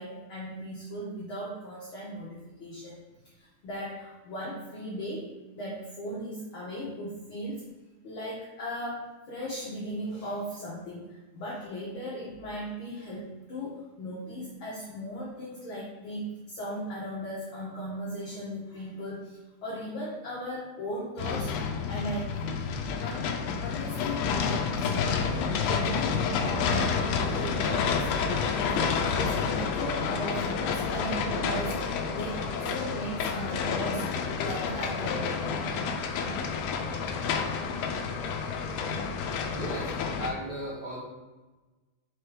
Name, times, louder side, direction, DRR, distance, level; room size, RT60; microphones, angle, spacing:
voice 1, 0.0-3.0 3.4-5.2 5.5-7.6 8.0-21.5 21.9-22.6 23.0-25.5 25.8-28.5 28.9-35.6, equal, 60° left, -6 dB, 1.5 m, -37 dB
sound 1, 21.2-40.3, left 5 dB, 80° left, 1.5 m, -29 dB
voice 2, 39.5-41.0, equal, 80° right, -5 dB, 0.8 m, -36 dB
4.8 x 4.3 x 4.8 m, 1.2 s
omnidirectional pair, 3.4 m